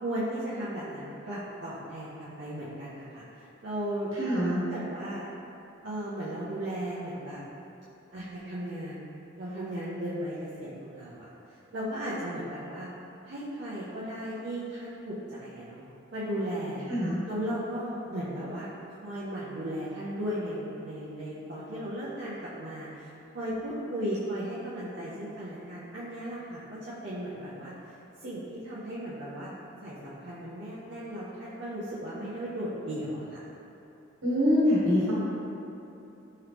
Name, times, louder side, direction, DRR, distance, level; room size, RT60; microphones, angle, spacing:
voice 1, 0.0-5.3 5.8-7.4 8.1-9.1 9.4-11.3 11.7-12.9 13.2-15.8 16.1-16.9 17.2-18.7 19.0-27.7 28.2-29.5 29.8-33.5, equal, 55° right, -10 dB, 0.5 m, -36 dB
voice 2, 4.2-4.6 16.9-17.2 34.2-35.1, left 1 dB, 75° right, -8 dB, 1.1 m, -24 dB
3.7 x 3.0 x 3.3 m, 2.9 s
head